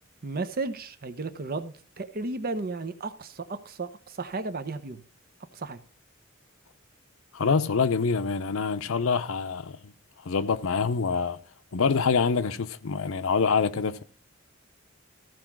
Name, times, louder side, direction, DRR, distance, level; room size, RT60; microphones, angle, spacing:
voice 1, 0.2-5.0 5.5-5.8, right 3 dB, 45° right, 0.7 m, -34 dB
voice 2, 7.3-9.9 10.2-11.4 11.7-14.0, left 5 dB, 75° left, 0.6 m, -25 dB
14.0 x 4.7 x 6.0 m
head